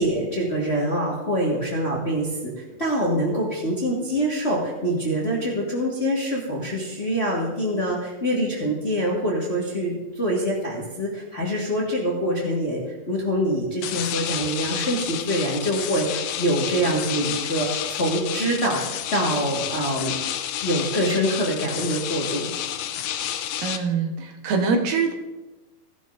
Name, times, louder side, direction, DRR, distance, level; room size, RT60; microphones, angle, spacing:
voice 1, 0.0-18.8 19.1-20.1 20.6-22.5, equal, 35° left, -4 dB, 1.1 m, -25 dB
sound 1, 13.8-23.8, left 10 dB, 85° left, 2.2 m, -30 dB
voice 2, 23.6-25.1, right 4 dB, 90° right, 3 dB, 2.9 m, -24 dB
17.0 x 11.0 x 2.6 m, 1.1 s
omnidirectional pair, 3.8 m